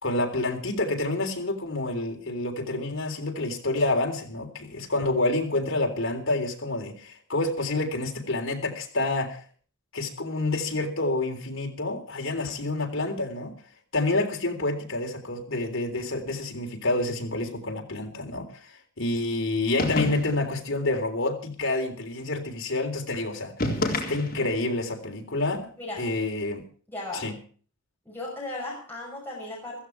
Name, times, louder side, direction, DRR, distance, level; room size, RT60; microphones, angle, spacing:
voice 1, 0.0-9.4 9.9-13.5 13.9-23.5 24.1-25.6 26.0-26.7 27.1-27.4, left 2 dB, 60° left, 3 dB, 3.5 m, -28 dB
sound 1, 19.8-20.5 23.6-24.6, left 2 dB, 40° left, 4.0 m, -28 dB
voice 2, 25.8-26.1 26.9-27.3 28.1-29.8, left 2 dB, 10° left, -4 dB, 6.1 m, -36 dB
15.5 x 15.0 x 4.7 m, 0.43 s
head